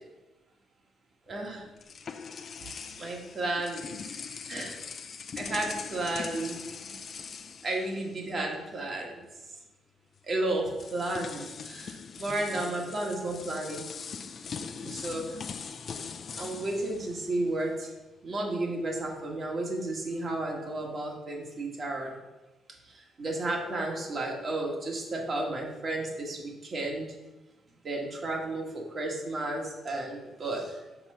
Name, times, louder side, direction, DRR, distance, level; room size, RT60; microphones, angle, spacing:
sound 1, 1.3-8.6 8.8-9.1 10.2-10.3 10.7-17.9, left 6 dB, 50° left, 0.5 m, -41 dB
voice 1, 1.3-1.6 3.0-3.9 4.5-4.8 5.4-6.6 7.6-9.2 10.3-13.8 14.8-15.2 16.4-17.9 18.2-22.1 23.2-27.1 27.8-30.8, right 2 dB, 45° right, 0 dB, 1.7 m, -32 dB
6.0 x 3.8 x 5.6 m, 1.1 s
cardioid pair, 90°, 0 cm